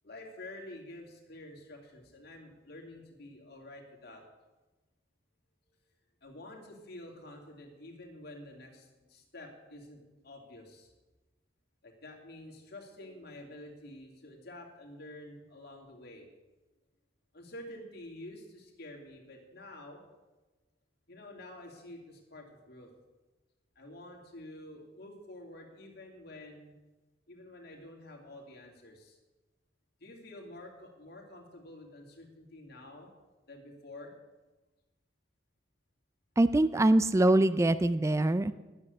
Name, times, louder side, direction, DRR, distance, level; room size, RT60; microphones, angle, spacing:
voice 1, 0.0-4.2 6.2-10.9 11.8-16.3 17.3-20.0 21.1-22.9 23.8-26.7 27.3-29.2 30.0-33.1 33.5-34.1, left 1 dB, 55° left, 0 dB, 2.7 m, -49 dB
voice 2, 36.4-38.5, right 1 dB, 15° right, 14 dB, 0.3 m, -24 dB
12.0 x 9.6 x 6.7 m, 1.1 s
head